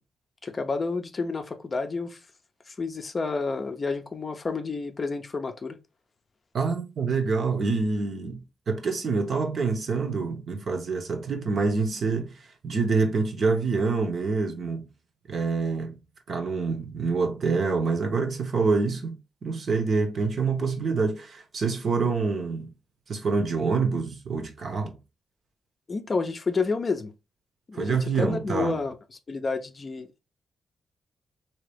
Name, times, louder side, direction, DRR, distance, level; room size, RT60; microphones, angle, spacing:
voice 1, 0.4-2.2 2.7-5.8 25.9-27.1 27.7-28.9 29.3-30.2, left 4 dB, 30° left, 0.5 m, -30 dB
voice 2, 6.5-8.4 8.7-12.3 12.6-14.9 15.3-15.9 16.3-19.1 19.4-22.7 23.1-24.9 27.8-28.7, right 4 dB, 50° right, 0.9 m, -26 dB
3.6 x 2.8 x 3.4 m
wide cardioid pair, 145°, 0 cm